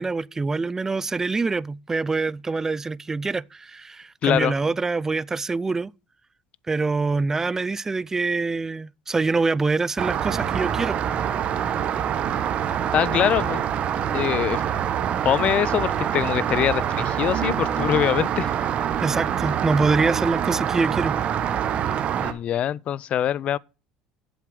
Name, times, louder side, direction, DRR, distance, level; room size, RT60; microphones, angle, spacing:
voice 1, 0.0-5.9 6.7-11.0 19.0-21.2, right 3 dB, 15° right, 0.4 m, -25 dB
voice 2, 4.2-4.6 12.9-13.6 14.1-14.6 15.2-18.5 22.2-23.6, left 11 dB, 45° left, 0.4 m, -23 dB
Rain, 10.0-22.3, right 9 dB, 45° right, 1.1 m, -25 dB
7.9 x 7.4 x 5.0 m
supercardioid pair, 105°, 3 cm